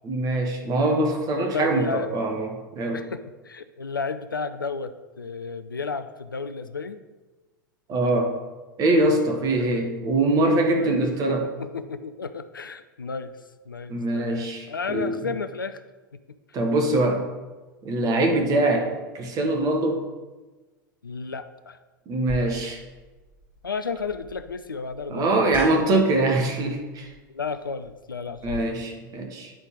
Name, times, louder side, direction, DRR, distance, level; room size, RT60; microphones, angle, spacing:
voice 1, 0.0-3.0 7.9-8.3 8.8-11.4 13.9-15.1 16.5-17.3 17.8-20.0 22.1-22.8 25.1-27.1 28.4-29.5, right 2 dB, 35° right, 3 dB, 1.4 m, -23 dB
voice 2, 1.5-2.1 2.9-7.0 9.7-9.9 10.7-10.9 11.6-13.3 13.7-15.8 18.1-18.3 21.0-21.8 23.6-25.6 25.9-26.0 27.3-28.7, left 4 dB, 85° left, 10 dB, 0.4 m, -33 dB
sound 1, 22.3-28.6, left 2 dB, 15° right, 2.4 m, -41 dB
9.4 x 4.0 x 3.8 m, 1.2 s
figure-of-eight pair, 90°, 11 cm